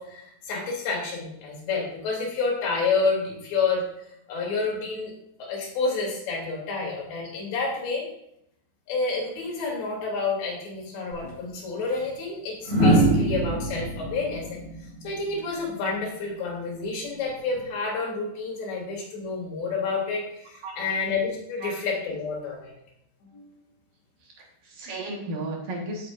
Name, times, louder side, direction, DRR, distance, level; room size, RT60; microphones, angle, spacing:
voice 1, 0.0-3.9 4.3-5.1 5.4-8.1 8.9-14.6 15.0-22.8 23.3-23.6, left 4 dB, 80° left, -2 dB, 5.1 m, -29 dB
sound 1, 11.1-11.3 12.6-15.7 17.3-17.6, right 1 dB, 15° right, 2.3 m, -23 dB
voice 2, 24.2-26.1, right 2 dB, 60° right, -1 dB, 2.8 m, -35 dB
16.5 x 7.4 x 2.6 m, 0.77 s
omnidirectional pair, 4.9 m